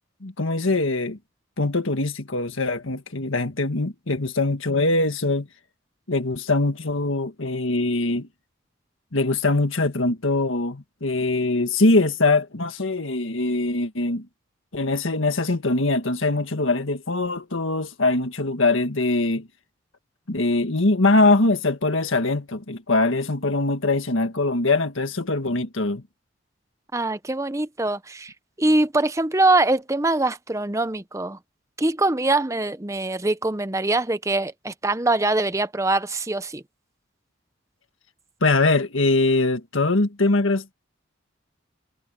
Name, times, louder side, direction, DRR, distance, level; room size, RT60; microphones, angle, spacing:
voice 1, 0.2-1.2 1.6-5.5 6.1-8.3 9.1-14.3 14.7-19.5 20.3-26.0 38.4-40.7, left 2 dB, 80° left, 1.7 m, -22 dB
voice 2, 26.9-28.3 28.6-31.4 31.8-36.6, right 2 dB, 15° right, 0.7 m, -23 dB
head